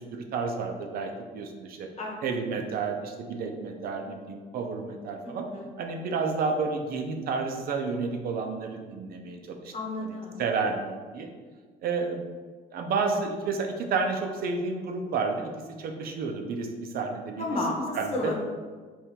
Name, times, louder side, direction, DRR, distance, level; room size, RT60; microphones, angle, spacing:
voice 1, 0.0-1.9 2.2-5.5 5.8-9.7 10.0-10.1 10.4-11.3 11.8-12.2 12.7-15.5 15.8-17.5 17.9-18.3, right 4 dB, 60° right, 4 dB, 0.6 m, -31 dB
voice 2, 5.2-5.7 9.7-10.4 17.4-18.3, left 2 dB, 40° left, 0 dB, 1.0 m, -32 dB
3.6 x 2.7 x 4.4 m, 1.5 s
cardioid pair, 110°, 17 cm